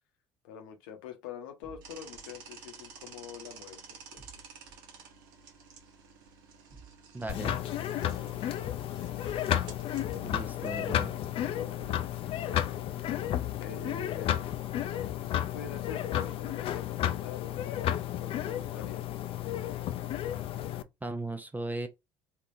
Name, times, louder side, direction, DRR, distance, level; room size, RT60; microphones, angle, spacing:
voice 1, 0.4-4.5 8.1-8.7 11.0-12.0 13.6-14.6 15.2-19.1, left 7 dB, 85° left, 0.7 m, -46 dB
sound 1, 1.6-2.2 4.2-4.7 6.7-7.3 9.2-9.8 11.8-12.4 14.3-14.9, right 5 dB, 45° right, 1.0 m, -53 dB
sound 2, 1.8-12.2, right 5 dB, 90° right, 0.9 m, -52 dB
voice 2, 7.1-7.6 10.1-11.1 21.0-21.9, right 2 dB, 15° right, 0.6 m, -37 dB
sound 3, 7.3-20.8, left 11 dB, 55° left, 0.4 m, -32 dB
3.4 x 2.8 x 2.5 m
hypercardioid pair, 65°, 11 cm